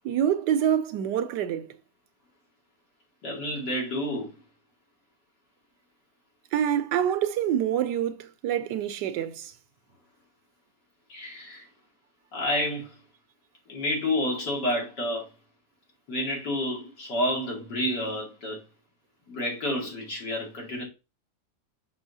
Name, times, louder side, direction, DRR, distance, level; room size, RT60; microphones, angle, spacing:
voice 1, 0.0-1.7 6.5-9.5, right 10 dB, 85° right, 1.3 m, -26 dB
voice 2, 3.2-4.3 11.1-11.6 12.3-12.9 13.7-15.3 16.1-18.6 19.3-20.8, left 1 dB, 85° left, 3.0 m, -29 dB
6.3 x 6.2 x 2.7 m
omnidirectional pair, 1.8 m